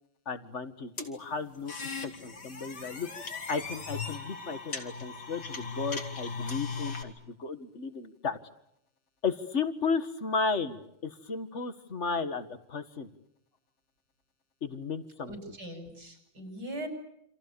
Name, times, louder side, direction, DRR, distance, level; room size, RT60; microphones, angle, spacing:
voice 1, 0.3-1.7 2.0-3.1 3.5-8.4 9.2-13.1 14.6-15.3, left 4 dB, 40° left, 11 dB, 1.9 m, -34 dB
sound 1, 1.0-7.0, left 5 dB, 60° left, 3.4 m, -38 dB
voice 2, 15.2-16.9, right 1 dB, 60° right, 5 dB, 6.5 m, -40 dB
29.0 x 27.0 x 7.0 m, 0.78 s
omnidirectional pair, 2.0 m